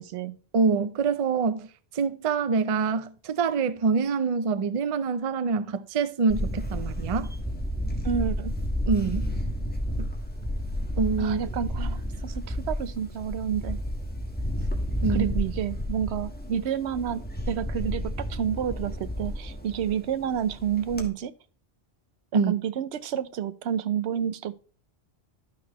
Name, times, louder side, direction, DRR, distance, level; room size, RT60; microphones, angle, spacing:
voice 1, 0.0-0.4 8.0-8.5 11.2-13.8 15.1-21.3 22.3-24.6, right 8 dB, 75° right, 0.8 m, -30 dB
voice 2, 0.5-1.7 1.9-7.3 8.9-9.3 10.0-10.1 11.0-11.4 15.0-15.3 22.3-22.5, right 5 dB, 45° right, 0.5 m, -25 dB
Camera, 6.3-21.1, equal, 10° left, 1.3 m, -31 dB
12.0 x 6.0 x 3.0 m
omnidirectional pair, 1.1 m